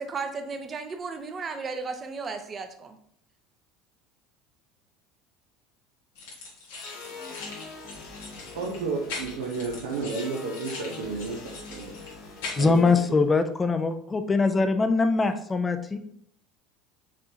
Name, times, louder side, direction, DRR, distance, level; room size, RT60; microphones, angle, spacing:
voice 1, 0.0-3.0, right 4 dB, 35° right, 7 dB, 0.7 m, -34 dB
sound 1, 6.1-12.8, left 4 dB, 85° left, 1.6 m, -41 dB
sound 2, 6.7-13.3, left 4 dB, 65° left, 1.2 m, -44 dB
voice 2, 8.5-11.9 12.6-13.2, right 4 dB, 85° right, -3 dB, 0.9 m, -32 dB
voice 3, 12.6-16.0, left 3 dB, 20° left, 9 dB, 0.6 m, -23 dB
5.0 x 3.7 x 2.8 m, 0.66 s
supercardioid pair, 90°, 0 cm